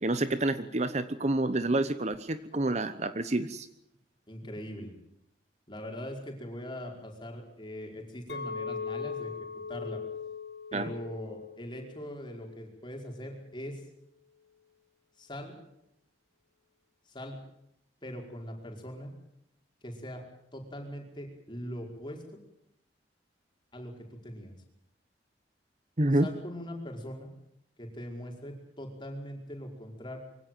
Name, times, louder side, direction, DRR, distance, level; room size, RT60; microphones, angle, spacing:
voice 1, 0.0-3.7 10.7-10.9 26.0-26.3, right 2 dB, 35° right, 12 dB, 1.0 m, -28 dB
voice 2, 4.3-4.9 5.7-9.3 9.7-10.0 10.7-13.8 15.2-15.6 17.1-17.4 18.0-19.1 19.8-20.2 20.5-22.4 23.7-24.5 26.2-27.3 27.8-30.2, equal, 25° left, 1 dB, 5.0 m, -41 dB
Chink clink, 8.3-12.6 13.0-13.4, left 5 dB, 60° left, 2.2 m, -40 dB
24.0 x 17.0 x 9.3 m, 0.78 s
head